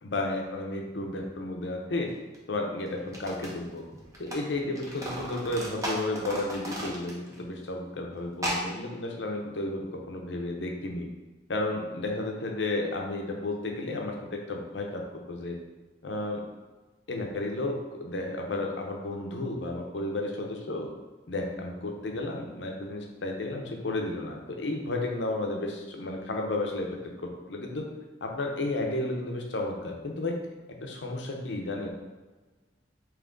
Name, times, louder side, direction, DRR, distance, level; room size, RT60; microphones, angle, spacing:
voice 1, 0.0-2.1 2.5-3.8 4.2-11.1 11.5-15.0 15.3-15.6 16.0-16.4 17.1-20.9 21.3-26.9 27.2-27.9 28.2-30.3 30.8-31.9, left 2 dB, 80° left, 1 dB, 0.7 m, -32 dB
sound 1, 2.3-2.4 3.0-4.4 4.7-7.4 7.7-7.8 8.3-8.7, right 1 dB, 20° right, 0.7 m, -35 dB
3.5 x 3.1 x 3.8 m, 1.2 s
head